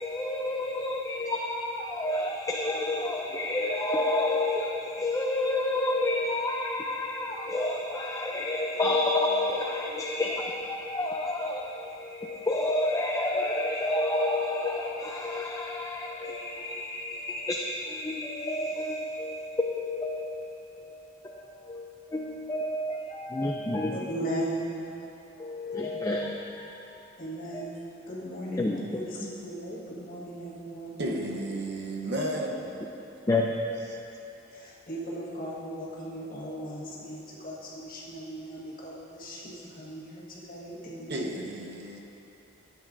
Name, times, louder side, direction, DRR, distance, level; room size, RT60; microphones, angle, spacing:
voice 1, 0.0-11.9 12.2-20.3 21.7-21.8 22.1-23.9 25.4-26.3 28.6-28.8 33.3-33.5, left 2 dB, 15° left, 0.4 m, -29 dB
voice 2, 23.9-24.8 27.2-31.5 34.5-41.5, right 1 dB, 45° left, 1.6 m, -38 dB
voice 3, 31.0-32.8 41.1-42.0, right 1 dB, 60° right, 0.8 m, -33 dB
12.0 x 8.5 x 2.6 m
head